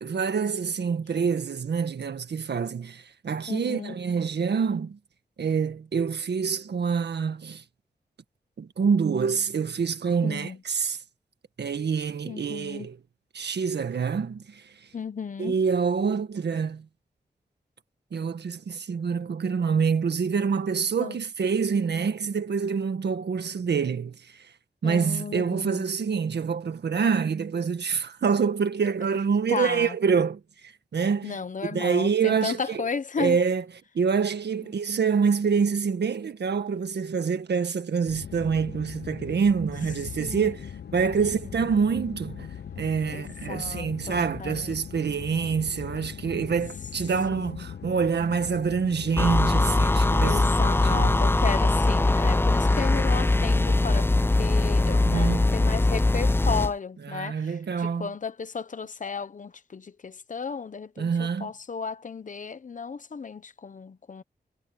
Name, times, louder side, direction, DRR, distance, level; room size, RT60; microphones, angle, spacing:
voice 1, 0.0-5.0 5.4-7.6 8.6-11.0 11.6-13.0 13.3-14.6 15.4-16.9 18.1-24.5 24.8-31.4 31.7-32.8 33.2-33.6 34.0-42.5 42.8-50.4 50.9-51.2 54.9-55.5 57.1-58.1 61.0-61.5, right 6 dB, 85° right, 1.7 m, -26 dB
voice 2, 3.5-4.0 10.2-10.6 12.2-12.9 14.9-15.6 21.0-21.2 24.8-25.9 29.5-30.0 31.2-33.4 40.0-40.6 41.2-41.8 43.1-44.8 47.3-47.7 50.2-64.2, left 5 dB, 50° left, 1.0 m, -34 dB
sound 1, 38.1-51.2, left 8 dB, 80° left, 0.8 m, -40 dB
sound 2, 49.2-56.7, left 2 dB, 15° left, 0.4 m, -21 dB
wide cardioid pair, 135°, 17 cm